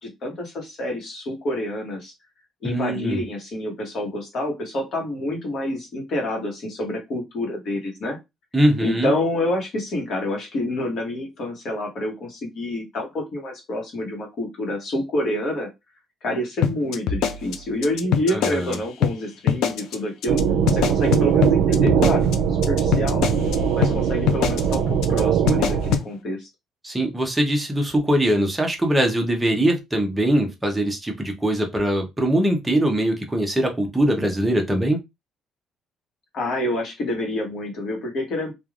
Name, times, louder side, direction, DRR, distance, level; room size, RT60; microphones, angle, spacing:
voice 1, 0.0-2.1 2.6-8.2 8.8-15.7 16.2-20.4 20.7-23.3 23.7-26.5 36.3-38.5, left 1 dB, 50° left, 1 dB, 1.0 m, -28 dB
voice 2, 2.6-3.2 8.5-9.1 18.3-18.8 26.8-35.0, right 1 dB, 10° right, 2 dB, 0.6 m, -22 dB
sound 1, 16.6-18.7 19.0-19.1 19.5-19.9 20.2-20.4 20.7-23.5 23.8-23.9 24.3-24.7 25.0-25.2 25.5-26.0, left 9 dB, 75° left, 0.3 m, -22 dB
sound 2, 20.3-26.0, right 7 dB, 80° right, 0.4 m, -21 dB
3.1 x 2.3 x 2.4 m, 0.21 s
cardioid pair, 150°, 0 cm